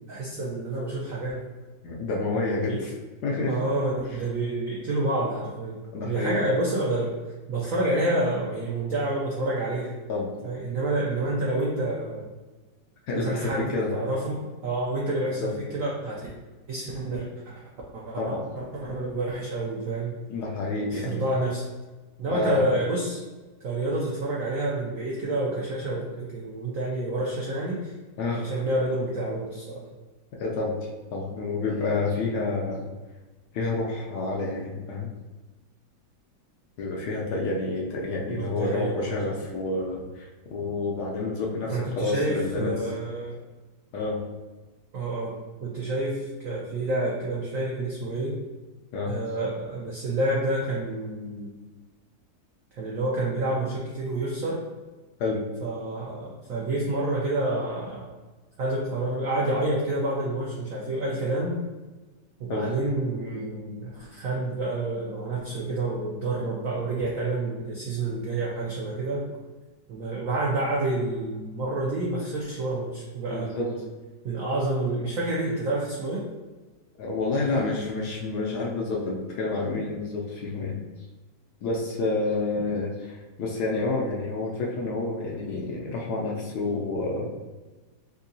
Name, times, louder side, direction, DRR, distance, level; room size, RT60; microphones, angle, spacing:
voice 1, 0.1-1.4 2.3-2.8 3.5-7.1 7.5-10.0 10.4-12.3 13.1-16.3 16.7-17.3 17.9-20.2 20.9-21.6 22.2-23.2 23.6-27.9 28.3-29.8 38.3-39.1 41.7-43.4 44.9-45.3 45.6-48.4 49.1-51.6 52.7-54.6 55.6-58.1 58.6-61.6 62.4-69.3 69.9-73.8 74.2-76.3, right 2 dB, 75° right, -4 dB, 0.7 m, -28 dB
voice 2, 1.8-2.9 3.2-3.6 5.9-6.4 10.1-10.3 13.1-13.9 15.4-15.6 18.2-18.5 20.3-21.2 22.3-22.6 28.2-28.5 30.3-32.9 33.5-35.1 36.8-42.7 43.9-44.2 48.9-49.1 55.2-55.4 62.5-62.7 73.3-73.7 77.0-80.8 81.6-87.3, left 3 dB, 75° left, -2 dB, 1.0 m, -29 dB
3.6 x 2.7 x 2.6 m, 1.2 s
omnidirectional pair, 2.0 m